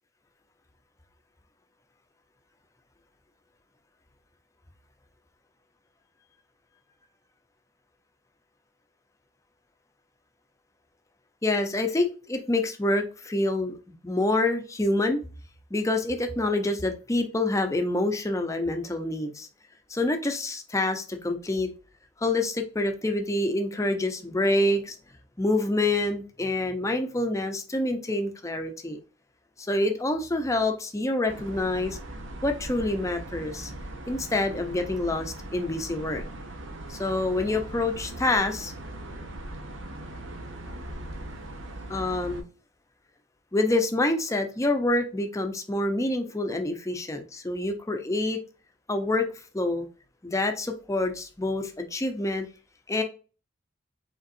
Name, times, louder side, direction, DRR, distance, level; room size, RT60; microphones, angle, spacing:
voice 1, 11.4-13.7 14.0-15.2 15.7-19.5 19.9-21.7 22.2-25.0 25.4-29.0 29.6-32.0 32.4-33.7 34.1-36.2 36.9-38.7 41.9-42.4 43.5-48.4 48.9-49.9 50.2-52.5 52.9-53.0, left 2 dB, 15° left, 0.6 m, -27 dB
sound 1, 31.3-42.4, right 1 dB, 90° right, 0.9 m, -39 dB
5.4 x 3.8 x 2.6 m
head